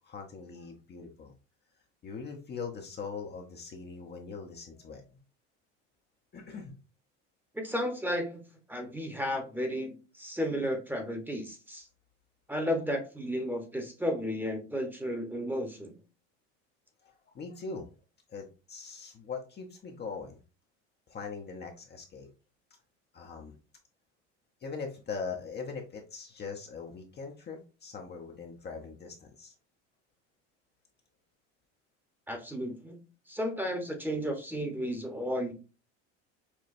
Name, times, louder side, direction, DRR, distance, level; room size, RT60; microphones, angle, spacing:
voice 1, 0.0-1.3 2.0-5.2 6.3-6.7 17.0-17.9 18.3-20.4 21.1-22.3 23.1-23.5 24.6-29.5, left 5 dB, 30° left, 1 dB, 0.7 m, -41 dB
voice 2, 7.5-8.4 8.7-11.9 12.5-15.9 32.3-33.0 33.3-35.5, equal, 5° right, 4 dB, 1.0 m, -33 dB
5.9 x 2.2 x 2.6 m, 0.32 s
supercardioid pair, 95°, 34 cm